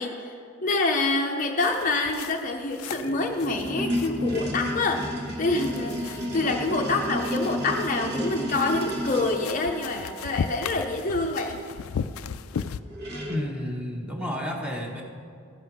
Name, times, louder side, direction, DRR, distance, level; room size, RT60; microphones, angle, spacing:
voice 1, 0.0-11.6, left 3 dB, 35° left, 3 dB, 0.6 m, -27 dB
sound 1, 1.6-12.8, left 7 dB, 75° left, 0.3 m, -38 dB
sound 2, 2.9-9.4 12.6-12.7 12.9-13.5, equal, 50° right, 1.2 m, -31 dB
Wind instrument woodwind instrument, 5.4-11.1, right 13 dB, 75° right, 1.0 m, -45 dB
voice 2, 13.3-15.0, left 1 dB, 5° right, 0 dB, 1.0 m, -31 dB
14.0 x 5.4 x 6.0 m, 2.4 s
head